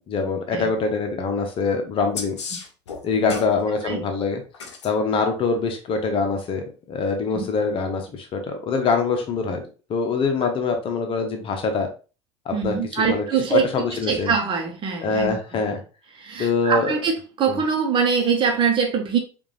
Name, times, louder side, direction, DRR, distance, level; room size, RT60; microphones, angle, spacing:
voice 1, 0.1-2.3 3.0-4.4 4.8-9.6 9.9-11.9 12.4-13.2 13.5-14.3 15.0-15.8 16.4-16.9 17.5-17.6, left 4 dB, 35° left, 1.0 m, -24 dB
sound 1, 2.1-3.6 4.5-4.9 7.1-7.2, left 5 dB, 70° left, 0.8 m, -33 dB
voice 2, 12.5-13.7 14.1-15.6 16.2-19.2, right 6 dB, 35° right, 1.1 m, -23 dB
5.0 x 2.7 x 3.3 m
figure-of-eight pair, 70°, 15 cm